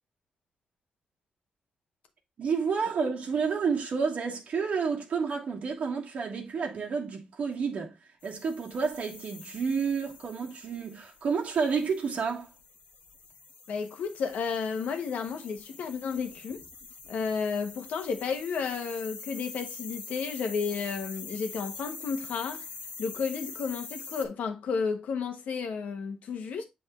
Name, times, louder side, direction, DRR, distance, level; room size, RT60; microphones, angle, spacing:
voice 1, 2.4-7.9 8.2-12.5, right 5 dB, 65° right, 1.6 m, -30 dB
sound 1, 8.2-24.3, left 5 dB, 70° left, 1.3 m, -45 dB
voice 2, 13.7-16.6 17.1-22.7 23.0-26.6, left 5 dB, 90° left, 1.1 m, -32 dB
7.8 x 3.6 x 3.7 m
cardioid pair, 85°, 2 cm